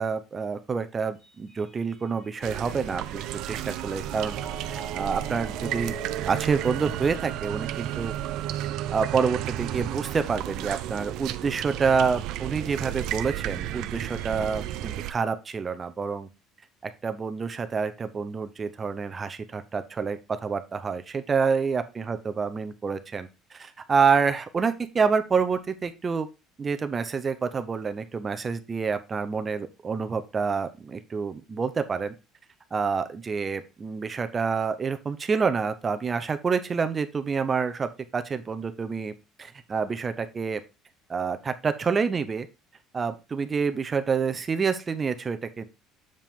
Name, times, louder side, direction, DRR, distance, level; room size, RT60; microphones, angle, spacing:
voice 1, 0.0-4.4 4.7-6.0 6.2-8.1 8.9-16.3 16.8-26.3 26.6-32.1 32.7-39.1 39.4-40.6 41.1-42.5 42.9-45.6, right 5 dB, 25° right, 9 dB, 0.7 m, -28 dB
Mallet percussion, 1.2-7.6, right 2 dB, 30° left, 2.6 m, -44 dB
sound 1, 2.4-15.1, right 12 dB, 65° right, 0.6 m, -33 dB
7.4 x 4.8 x 3.5 m, 0.27 s
cardioid pair, 145°, 0 cm